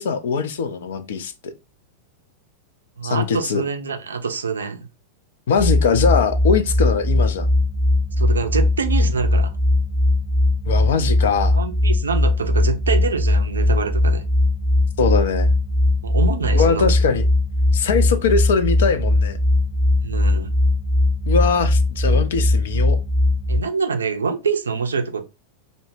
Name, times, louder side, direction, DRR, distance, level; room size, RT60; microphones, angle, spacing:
voice 1, 0.0-1.3 3.0-3.6 5.5-7.5 10.7-11.6 15.0-15.5 16.5-17.2 17.7-19.4 21.3-23.0, left 5 dB, 60° left, 0.3 m, -21 dB
voice 2, 3.0-4.9 8.2-9.5 11.5-14.2 16.0-16.9 20.0-20.5 23.5-25.4, right 5 dB, 70° right, 0.3 m, -25 dB
sound 1, 5.6-23.6, left 1 dB, 10° left, 0.7 m, -19 dB
2.0 x 2.0 x 3.1 m
figure-of-eight pair, 90°, 0 cm